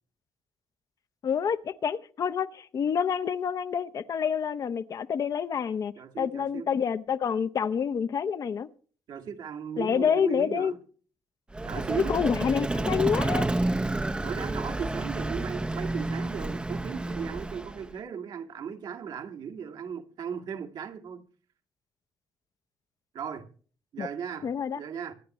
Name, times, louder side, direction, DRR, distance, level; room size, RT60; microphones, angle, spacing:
voice 1, 1.2-8.7 9.8-10.7 12.1-13.5 24.0-24.1 24.4-24.8, left 7 dB, 50° left, 0.8 m, -28 dB
voice 2, 6.0-6.7 9.1-10.8 11.6-12.2 14.2-21.3 23.1-23.5 23.9-24.5 24.7-25.1, right 7 dB, 70° right, 2.2 m, -36 dB
Vehicle, 11.5-17.9, right 2 dB, 15° right, 0.7 m, -30 dB
25.0 x 10.0 x 3.1 m
cardioid pair, 105°, 7 cm